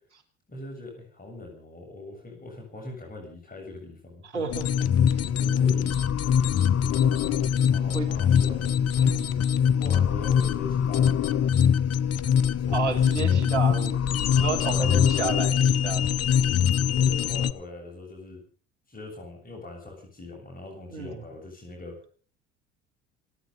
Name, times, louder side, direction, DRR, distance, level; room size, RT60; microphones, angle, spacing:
voice 1, 0.5-4.5 5.2-6.0 6.3-6.5 7.7-8.8 9.7-11.3 12.6-13.4 14.5-15.1 16.9-18.4 18.9-22.0, left 2 dB, 25° left, 1 dB, 7.5 m, -41 dB
voice 2, 4.3-4.9 7.9-8.1 9.0-9.3 12.7-14.0 14.3-16.6 20.9-21.3, right 5 dB, 90° right, 3 dB, 3.1 m, -32 dB
sound 1, 4.5-17.5, left 8 dB, 45° left, 1.2 m, -23 dB
28.0 x 9.4 x 5.4 m, 0.40 s
hypercardioid pair, 65°, 34 cm